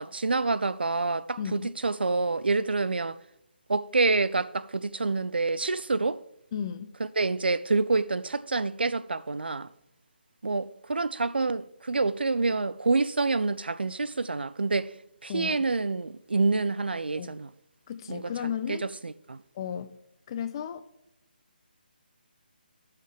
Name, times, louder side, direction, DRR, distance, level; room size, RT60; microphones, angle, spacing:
voice 1, 0.0-3.2 3.7-6.2 7.2-9.7 10.4-14.9 15.2-17.5 18.1-18.2 18.7-18.8 19.0-19.4, right 3 dB, 80° right, 0.4 m, -27 dB
voice 2, 1.4-1.7 6.5-6.9 15.3-15.7 17.1-17.4 17.9-18.9 19.5-20.0 20.3-20.9, left 8 dB, 30° left, 0.4 m, -34 dB
16.0 x 5.7 x 3.2 m
figure-of-eight pair, 150°, 5 cm